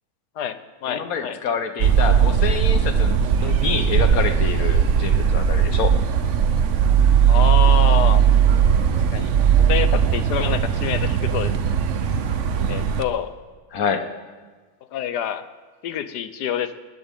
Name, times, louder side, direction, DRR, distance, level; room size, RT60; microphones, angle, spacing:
voice 1, 0.4-1.4 7.3-8.2 9.1-9.3 9.7-11.5 12.7-13.3 14.9-15.4 15.8-16.7, left 9 dB, 90° left, 11 dB, 1.4 m, -27 dB
voice 2, 0.9-5.9 13.7-14.0, left 6 dB, 60° left, 8 dB, 1.6 m, -27 dB
sound 1, 1.8-13.0, right 7 dB, 55° right, 1.0 m, -18 dB
20.0 x 18.5 x 3.7 m, 1.4 s
omnidirectional pair, 1.7 m